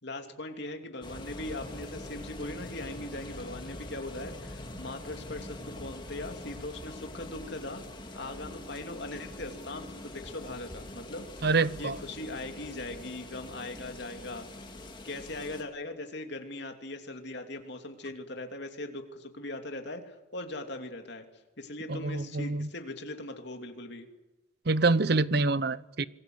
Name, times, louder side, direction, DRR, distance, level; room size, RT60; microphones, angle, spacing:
voice 1, 0.0-7.8 8.1-11.5 11.8-14.5 15.0-21.2 21.6-24.1, left 2 dB, 55° left, 4 dB, 3.0 m, -40 dB
sound 1, 1.0-15.6, left 1 dB, 25° left, 2.7 m, -44 dB
voice 2, 11.4-11.9 22.0-22.7 24.7-26.0, right 3 dB, 50° right, 17 dB, 0.7 m, -26 dB
26.5 x 21.0 x 8.0 m, 1.1 s
head